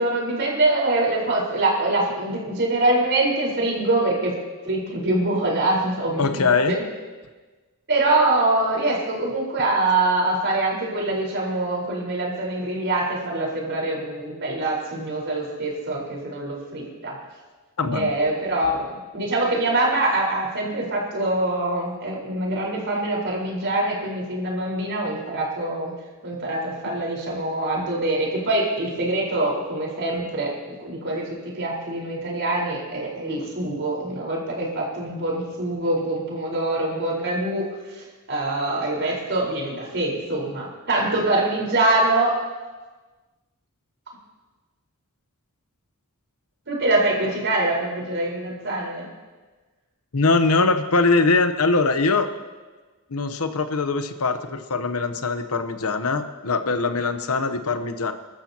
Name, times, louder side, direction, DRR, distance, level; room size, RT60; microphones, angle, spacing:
voice 1, 0.0-4.3 4.6-6.8 7.9-17.2 17.8-25.9 26.2-30.5 30.8-42.4 46.7-49.1, right 2 dB, 55° right, -2 dB, 4.7 m, -24 dB
voice 2, 6.2-6.7 17.8-18.1 50.1-52.3 53.1-58.1, left 3 dB, 75° left, 8 dB, 1.0 m, -22 dB
28.5 x 13.0 x 3.0 m, 1.3 s
head